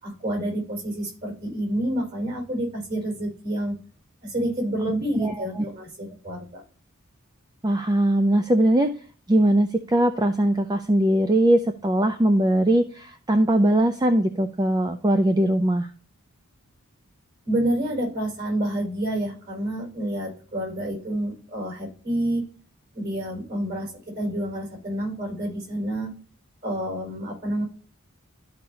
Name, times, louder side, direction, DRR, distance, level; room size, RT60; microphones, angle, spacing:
voice 1, 0.0-3.7 4.2-6.6 17.4-22.5 22.9-26.1 26.6-27.6, right 1 dB, 45° right, 0 dB, 4.7 m, -28 dB
voice 2, 5.2-5.6 7.6-8.9 9.3-15.9, right 1 dB, 20° right, 7 dB, 0.4 m, -21 dB
13.0 x 5.4 x 2.8 m, 0.40 s
head